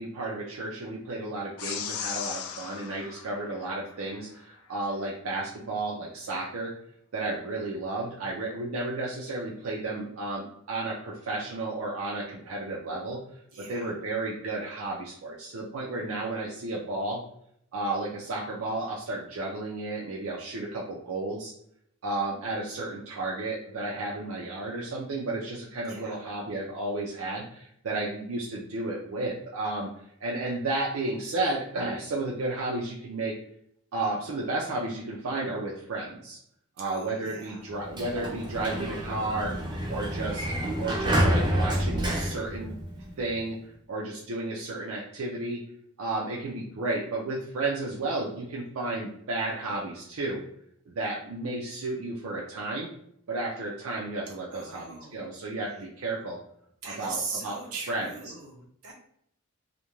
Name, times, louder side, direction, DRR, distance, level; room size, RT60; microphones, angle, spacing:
voice 1, 0.0-6.7 7.1-13.2 13.7-17.2 17.7-21.5 22.0-29.9 30.2-33.3 33.9-36.4 36.8-39.5 39.9-40.4 40.8-42.7 43.2-45.6 46.0-50.4 50.9-52.9 53.3-56.4 56.8-57.6 57.9-58.1, right 2 dB, 70° right, -3 dB, 0.5 m, -32 dB
sound 1, 1.6-4.2, left 8 dB, 75° left, 0.3 m, -37 dB
voice 2, 13.5-13.9 25.8-26.2 36.8-37.6 54.5-55.2 56.8-58.9, right 4 dB, 90° right, -1 dB, 0.8 m, -39 dB
Sliding door, 37.7-43.3, equal, 20° right, 0.5 m, -29 dB
2.4 x 2.1 x 2.9 m, 0.69 s
head